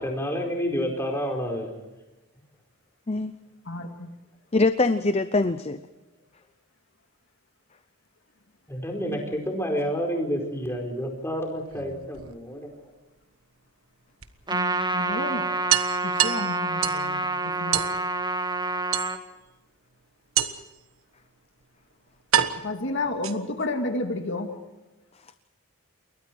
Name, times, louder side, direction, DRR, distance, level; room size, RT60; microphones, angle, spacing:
voice 1, 0.0-1.7 8.7-12.7, equal, 10° left, 1 dB, 4.7 m, -29 dB
voice 2, 3.7-4.1 14.5-15.5 16.0-17.8 22.5-24.6, left 2 dB, 55° left, 4 dB, 2.3 m, -31 dB
voice 3, 4.5-5.8, left 3 dB, 30° left, 11 dB, 0.7 m, -23 dB
sound 1, 11.6-12.7 14.2-14.3 14.7-14.8 15.1-15.2 15.7-17.1 17.7-18.0 18.9-19.5 20.4-20.8 21.6-21.7 22.3-23.7, right 10 dB, 75° right, 1.5 m, -27 dB
Trumpet, 14.5-19.2, right 2 dB, 20° right, 1.6 m, -28 dB
29.0 x 22.5 x 4.7 m, 1.1 s
head